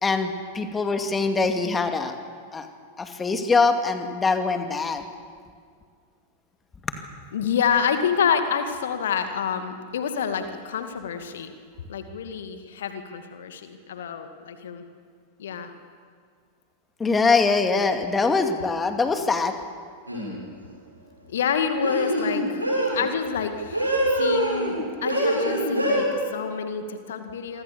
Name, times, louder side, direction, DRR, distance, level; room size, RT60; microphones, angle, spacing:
voice 1, 0.0-2.1 2.5-2.7 3.0-5.0 6.8-7.0 17.0-19.5, left 4 dB, 15° left, 6 dB, 2.3 m, -23 dB
voice 2, 7.3-11.5 11.9-14.8 15.4-15.7 21.3-22.6 22.9-27.6, left 7 dB, 60° left, 7 dB, 2.2 m, -28 dB
sound 1, 20.1-20.4 21.8-23.0 23.7-24.8 25.1-26.0, right 1 dB, 85° right, 7.4 m, -24 dB
27.0 x 24.0 x 7.1 m, 2.1 s
figure-of-eight pair, 90°, 0 cm